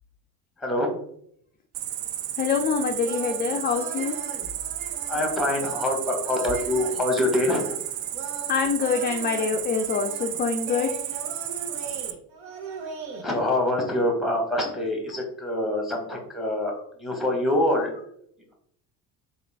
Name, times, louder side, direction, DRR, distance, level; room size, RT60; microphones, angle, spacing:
voice 1, 0.6-0.9 5.1-7.7 13.2-17.9, left 1 dB, ahead, 1 dB, 1.2 m, -25 dB
Cricket, 1.7-12.1, right 11 dB, 50° right, 0.5 m, -33 dB
voice 2, 2.4-4.1 8.5-10.9, left 6 dB, 25° left, 3 dB, 0.3 m, -25 dB
sound 1, 3.0-13.2, right 3 dB, 70° right, 0.8 m, -40 dB
3.6 x 2.4 x 3.4 m, 0.68 s
hypercardioid pair, 65°, 47 cm